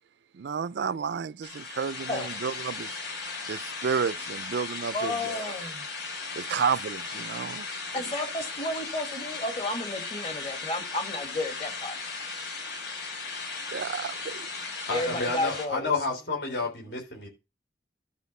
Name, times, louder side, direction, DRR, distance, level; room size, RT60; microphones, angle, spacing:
voice 1, 0.3-3.0 3.5-5.7 6.3-7.8 13.7-14.6, right 6 dB, 70° right, 0.4 m, -32 dB
sound 1, 1.4-15.7, left 4 dB, 90° left, 4.1 m, -37 dB
voice 2, 4.9-5.9 7.9-12.0 14.9-15.9, left 2 dB, 35° left, 2.0 m, -32 dB
voice 3, 14.9-17.3, left 3 dB, 70° left, 3.7 m, -30 dB
12.5 x 5.1 x 5.4 m
head